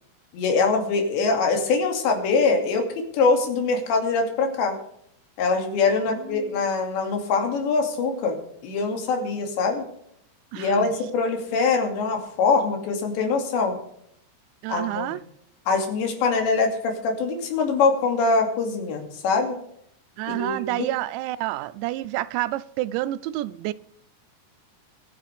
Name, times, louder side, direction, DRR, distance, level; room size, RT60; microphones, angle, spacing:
voice 1, 0.3-4.7 5.4-8.4 8.6-9.8 10.5-13.8 14.7-15.2 15.7-19.6 20.3-20.9, left 4 dB, 80° left, 4.8 m, -23 dB
voice 2, 6.1-6.6 10.5-10.9 14.6-15.2 20.2-23.7, right 16 dB, 85° right, 2.9 m, -29 dB
24.0 x 10.0 x 3.5 m
omnidirectional pair, 5.1 m